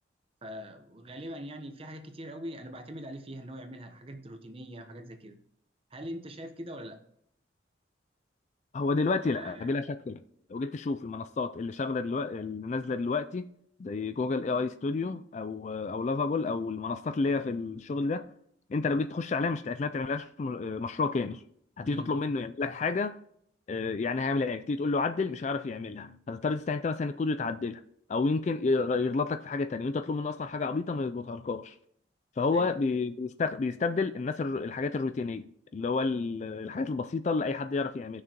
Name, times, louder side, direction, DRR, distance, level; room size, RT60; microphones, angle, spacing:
voice 1, 0.4-5.4 5.9-7.0 9.2-9.7 21.8-22.1 32.5-32.7, equal, 30° right, 0.9 m, -42 dB
voice 2, 8.7-10.2 10.5-13.5 13.8-18.3 18.7-21.4 21.8-23.2 23.7-27.8 28.1-31.8 32.4-38.2, left 3 dB, 40° left, 0.3 m, -30 dB
17.5 x 6.4 x 3.0 m
head